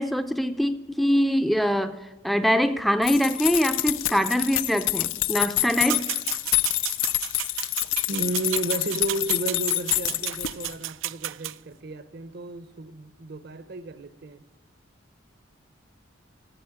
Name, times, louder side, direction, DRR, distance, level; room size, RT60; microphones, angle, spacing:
voice 1, 0.0-2.0 2.2-6.0, equal, ahead, 0.5 m, -23 dB
sound 1, 3.0-10.8, left 16 dB, 80° left, 0.5 m, -27 dB
sound 2, 5.9-11.5, right 15 dB, 75° right, 0.4 m, -33 dB
voice 2, 8.1-14.5, right 2 dB, 55° right, 0.8 m, -33 dB
14.0 x 7.8 x 8.7 m
head